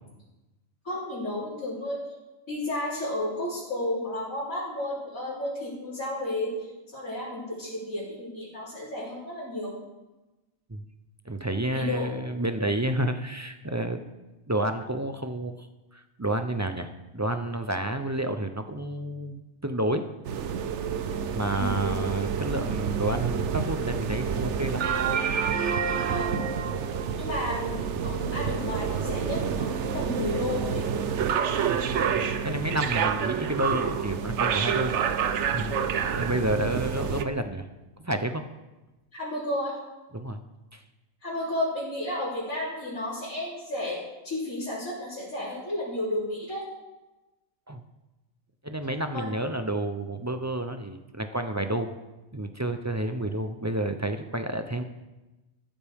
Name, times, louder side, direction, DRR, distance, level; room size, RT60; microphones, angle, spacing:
voice 1, 0.8-2.0 2.5-6.5 6.9-9.7 11.7-12.1 21.5-22.0 26.1-29.7 29.9-30.9 39.1-39.8 41.2-46.6 49.1-49.3, left 1 dB, 75° left, -10 dB, 4.1 m, -32 dB
voice 2, 11.2-14.0 14.5-15.7 15.9-20.1 21.3-24.9 31.7-31.8 32.1-35.8 36.1-37.7 38.0-38.4 40.1-40.4 40.7-40.8 47.7-47.8 48.6-51.9 52.3-54.8, right 1 dB, 20° right, 7 dB, 0.4 m, -30 dB
sound 1, 20.2-37.2, right 7 dB, 60° right, 1.0 m, -28 dB
14.5 x 13.0 x 3.6 m, 1.1 s
omnidirectional pair, 1.4 m